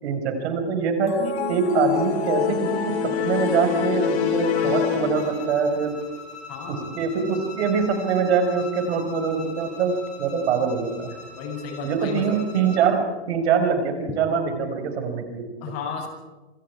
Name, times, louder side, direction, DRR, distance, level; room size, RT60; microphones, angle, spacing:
voice 1, 0.0-6.0 6.7-11.2 11.8-15.4, right 6 dB, 70° right, 6 dB, 5.4 m, -24 dB
sound 1, 1.1-5.7, left 8 dB, 70° left, 5.7 m, -25 dB
Bowed string instrument, 5.1-12.9, left 3 dB, 20° left, 6.3 m, -41 dB
voice 2, 6.5-6.9 11.3-12.4 15.6-16.1, left 6 dB, 45° left, 3 dB, 7.5 m, -33 dB
27.0 x 24.0 x 4.8 m, 1.2 s
hypercardioid pair, 115°, 34 cm